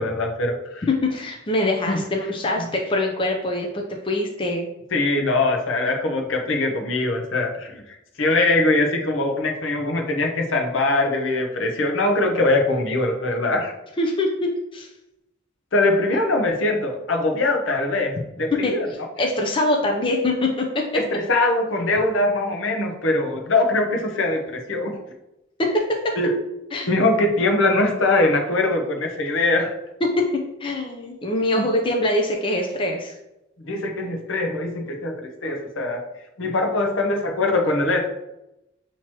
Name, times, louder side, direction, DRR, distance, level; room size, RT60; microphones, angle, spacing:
voice 1, 0.0-0.9 1.6-2.0 2.6-2.7 4.9-13.7 15.7-18.9 20.9-25.0 26.2-26.3 26.9-29.7 31.5-31.6 33.6-36.0 36.4-38.1, left 2 dB, 75° left, 3 dB, 0.8 m, -22 dB
voice 2, 0.8-4.7 14.0-14.9 18.6-18.7 19.2-20.8 25.6-26.1 26.7-26.9 30.2-30.3 30.6-33.1, left 1 dB, 25° left, 1 dB, 0.5 m, -23 dB
6.0 x 2.9 x 2.9 m, 0.90 s
head